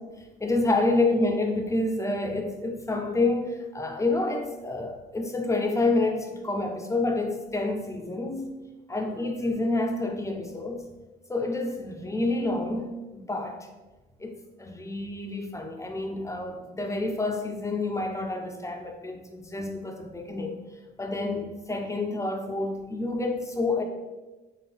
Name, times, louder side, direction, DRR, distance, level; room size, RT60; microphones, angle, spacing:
voice 1, 0.4-8.5 8.9-10.9 11.3-13.7 14.2-20.6 21.0-23.8, left 2 dB, 15° left, 3 dB, 0.5 m, -28 dB
4.3 x 2.2 x 3.5 m, 1.1 s
cardioid pair, 90°, 20 cm